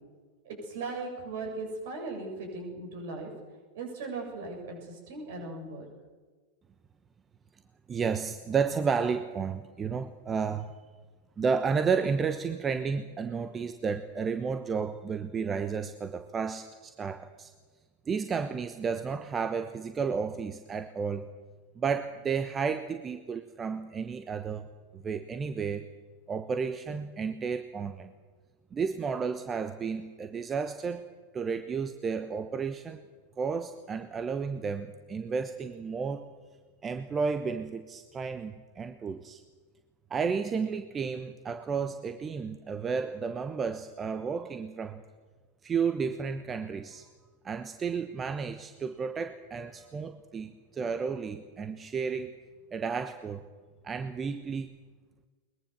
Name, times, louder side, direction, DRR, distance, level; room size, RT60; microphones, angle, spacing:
voice 1, 0.4-3.3 3.7-5.9, right 3 dB, 55° right, 2 dB, 7.8 m, -38 dB
voice 2, 7.9-10.7 11.4-17.5 18.1-21.3 21.8-24.7 24.9-25.9 26.3-28.1 28.7-31.0 31.3-33.0 33.4-36.3 36.8-39.4 40.1-45.0 45.6-47.1 47.4-52.3 52.7-53.4 53.8-54.7, right 5 dB, 20° right, 10 dB, 1.1 m, -32 dB
22.0 x 21.5 x 7.1 m, 1.4 s
figure-of-eight pair, 90°, 0 cm